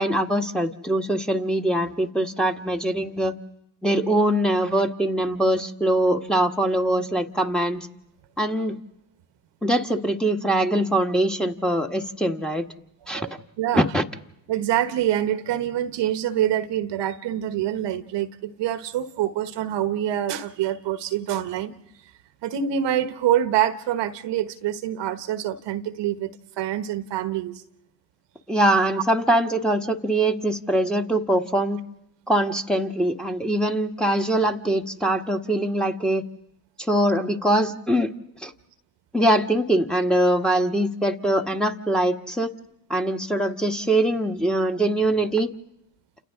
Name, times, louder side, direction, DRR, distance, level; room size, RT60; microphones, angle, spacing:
voice 1, 0.0-3.3 3.8-7.9 8.4-8.8 9.6-12.6 13.1-13.3 13.7-14.0 28.5-31.8 32.3-36.2 36.8-38.1 38.4-38.5 39.1-42.5 42.9-45.5, right 1 dB, ahead, 3 dB, 1.5 m, -22 dB
voice 2, 13.6-13.9 14.5-21.7 22.4-26.3 26.6-27.6, right 11 dB, 60° right, 10 dB, 1.2 m, -25 dB
29.0 x 27.5 x 3.8 m, 0.80 s
supercardioid pair, 80°, 48 cm